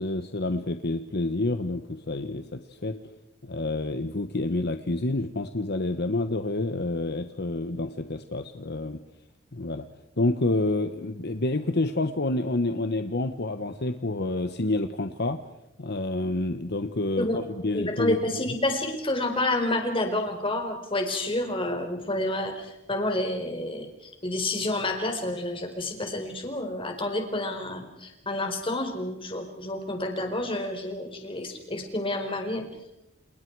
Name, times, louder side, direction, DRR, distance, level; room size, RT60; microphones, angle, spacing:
voice 1, 0.0-2.9 3.4-9.0 9.5-9.8 10.2-15.4 15.8-18.2, left 2 dB, 55° left, 8 dB, 1.2 m, -28 dB
voice 2, 17.7-23.9 24.2-32.6, left 1 dB, 25° left, 4 dB, 4.5 m, -29 dB
30.0 x 28.5 x 4.8 m, 0.89 s
head